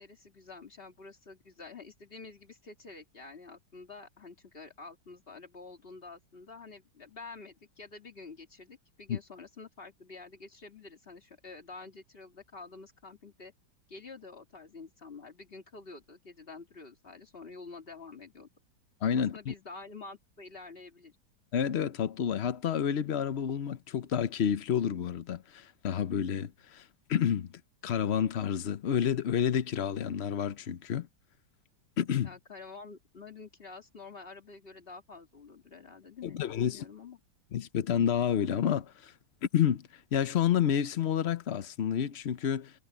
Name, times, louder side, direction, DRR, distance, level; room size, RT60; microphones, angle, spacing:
voice 1, 0.0-13.5 13.9-18.5 19.2-21.1 32.2-37.2, left 4 dB, 30° left, 2.3 m, -48 dB
voice 2, 19.0-19.5 21.5-26.8 27.1-27.5 27.8-31.1 32.0-32.3 36.3-36.9 37.5-39.1 39.5-42.7, left 9 dB, 65° left, 0.6 m, -29 dB
omnidirectional pair, 2.1 m